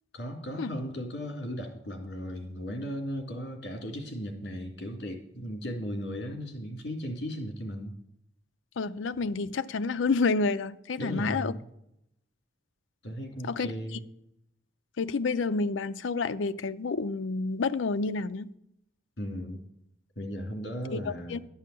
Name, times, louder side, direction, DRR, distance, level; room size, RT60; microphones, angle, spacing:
voice 1, 0.1-7.9 11.0-11.7 13.0-14.1 19.2-19.6 20.2-21.5, equal, 60° left, 2.6 m, -36 dB
voice 2, 8.8-11.6 13.4-13.7 15.0-18.5 20.9-21.4, left 4 dB, 80° left, 0.5 m, -29 dB
12.0 x 5.6 x 8.8 m
head